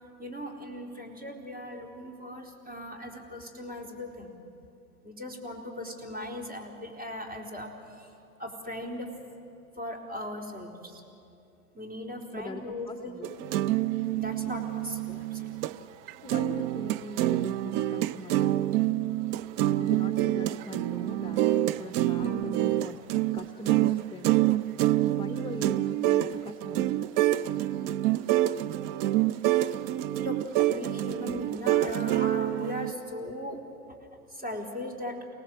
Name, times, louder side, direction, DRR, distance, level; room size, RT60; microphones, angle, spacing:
voice 1, 0.2-4.4 5.0-8.1 8.4-9.2 9.8-11.0 11.7-13.1 14.0-15.5 22.2-22.5 30.2-33.6 34.3-35.2, left 1 dB, 20° right, 1 dB, 4.2 m, -38 dB
voice 2, 12.3-13.3 16.2-18.5 19.7-21.5 21.8-24.5 25.1-26.9, left 2 dB, 10° left, 6 dB, 1.1 m, -41 dB
sound 1, 13.2-15.8 16.1-32.9, right 14 dB, 45° right, 0.7 m, -27 dB
29.0 x 19.0 x 7.8 m, 2.7 s
figure-of-eight pair, 95°, 43 cm